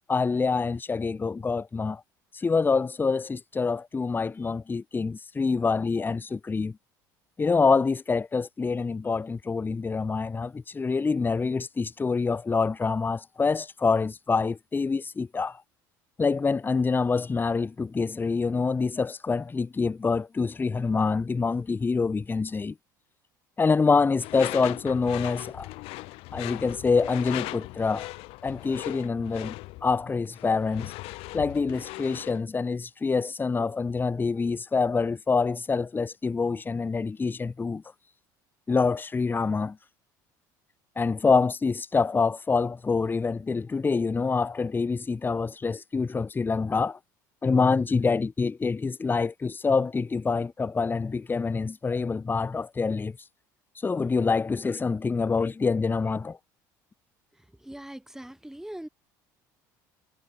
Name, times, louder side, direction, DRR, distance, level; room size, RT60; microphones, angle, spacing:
voice 1, 0.1-2.0 2.3-6.8 7.4-15.6 16.2-22.8 23.6-25.7 26.3-28.1 28.4-29.5 29.8-30.9 31.3-37.8 38.7-39.8 41.0-47.0 47.4-53.2 53.8-56.4, left 4 dB, 20° left, 0.7 m, -26 dB
Door / Screech, 24.2-32.4, left 22 dB, 65° left, 1.2 m, -39 dB
voice 2, 57.3-58.9, right 1 dB, 5° right, 4.3 m, -42 dB
hypercardioid pair, 75°, 10 cm